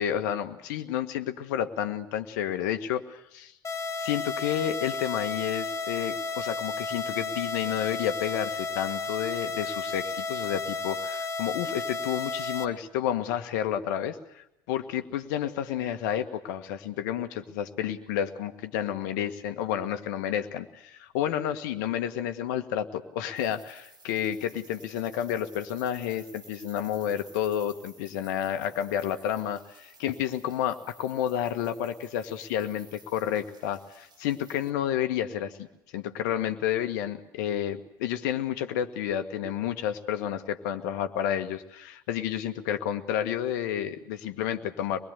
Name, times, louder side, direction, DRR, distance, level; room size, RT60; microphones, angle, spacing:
voice 1, 0.0-3.5 4.0-35.7 35.9-45.0, left 10 dB, 65° left, 8 dB, 1.6 m, -30 dB
sound 1, 3.6-12.6, left 4 dB, 30° left, 1.8 m, -33 dB
sound 2, 23.4-34.7, right 2 dB, 45° right, 6.2 m, -54 dB
25.0 x 21.0 x 8.2 m, 0.80 s
hypercardioid pair, 70°, 10 cm